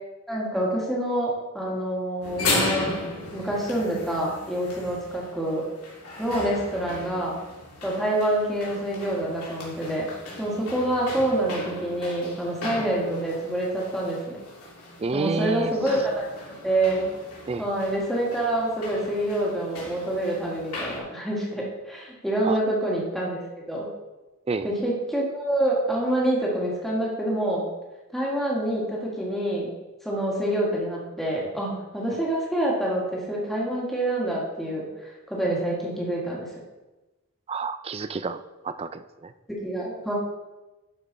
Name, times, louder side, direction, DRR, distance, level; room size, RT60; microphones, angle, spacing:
voice 1, 0.3-3.0 3.3-5.6 6.2-7.4 7.8-10.1 10.4-14.4 15.1-16.3 16.6-17.1 17.6-23.9 24.6-27.7 28.1-29.7 30.0-36.5 39.5-40.1, right 1 dB, ahead, -4 dB, 2.0 m, -27 dB
sound 1, 2.2-21.0, left 2 dB, 75° left, 2.9 m, -36 dB
voice 2, 15.0-15.7 17.5-17.7 22.4-22.6 24.5-24.7 37.5-39.3, right 4 dB, 25° right, 11 dB, 0.3 m, -29 dB
11.5 x 5.5 x 4.1 m, 1.1 s
head